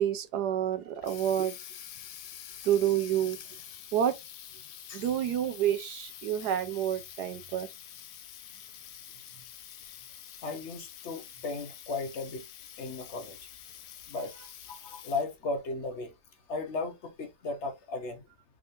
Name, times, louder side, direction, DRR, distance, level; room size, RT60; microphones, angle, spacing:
voice 1, 0.0-1.6 2.6-3.4 3.9-4.2 4.9-7.7, right 10 dB, 80° right, 1.2 m, -28 dB
Water tap faucet, 0.7-15.4, left 10 dB, 75° left, 1.2 m, -47 dB
voice 2, 10.4-12.4 12.8-13.4 14.1-14.3 14.7-16.1 16.5-18.2, left 3 dB, 50° left, 1.0 m, -35 dB
3.7 x 3.5 x 2.5 m
omnidirectional pair, 1.8 m